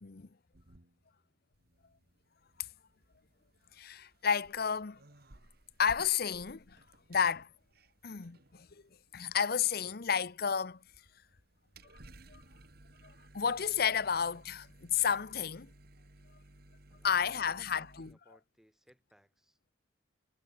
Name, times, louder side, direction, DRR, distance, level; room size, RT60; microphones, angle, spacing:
sound 1, 0.5-1.3 1.5-18.1, right 1 dB, 55° right, 2.3 m, -59 dB
voice 1, 3.8-5.0 5.8-6.8 7.1-7.5 8.0-8.7 9.1-10.8 12.3-12.4 13.0-15.7 17.0-18.2, left 7 dB, 50° left, 0.7 m, -31 dB
voice 2, 16.9-19.7, equal, ahead, 4.2 m, -66 dB
head